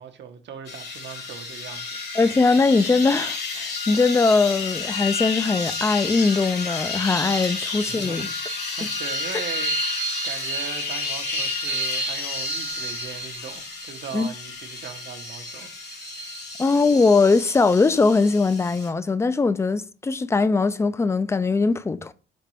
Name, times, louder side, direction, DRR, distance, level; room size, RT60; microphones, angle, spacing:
voice 1, 0.0-2.1 7.6-15.7, right 7 dB, 65° right, 0.9 m, -39 dB
sound 1, 0.7-18.9, left 2 dB, 55° left, 1.5 m, -30 dB
voice 2, 2.1-8.3 14.1-14.3 16.6-22.1, left 4 dB, 15° left, 0.3 m, -21 dB
5.1 x 3.3 x 3.1 m
cardioid pair, 90°, 20 cm